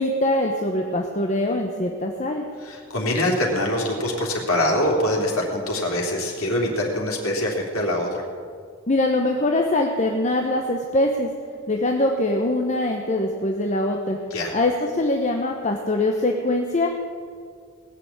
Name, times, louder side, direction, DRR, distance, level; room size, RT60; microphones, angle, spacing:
voice 1, 0.0-2.5 8.9-11.3 11.7-14.2 14.5-16.9, left 1 dB, 35° left, 2 dB, 1.0 m, -23 dB
voice 2, 2.6-8.2 14.3-14.5, left 1 dB, 85° left, -1 dB, 3.2 m, -24 dB
19.0 x 6.9 x 8.7 m, 2.1 s
head